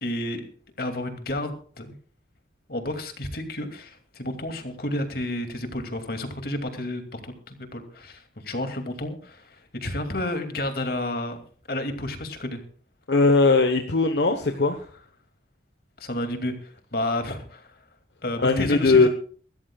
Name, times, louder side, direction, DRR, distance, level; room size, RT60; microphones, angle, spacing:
voice 1, 0.0-0.5 0.8-1.9 2.7-11.4 11.7-12.6 16.0-17.7 18.2-19.1, left 1 dB, 55° left, 6 dB, 2.5 m, -31 dB
voice 2, 13.1-14.8 18.4-19.1, left 3 dB, 75° left, 7 dB, 1.2 m, -19 dB
23.5 x 13.5 x 2.4 m, 0.43 s
head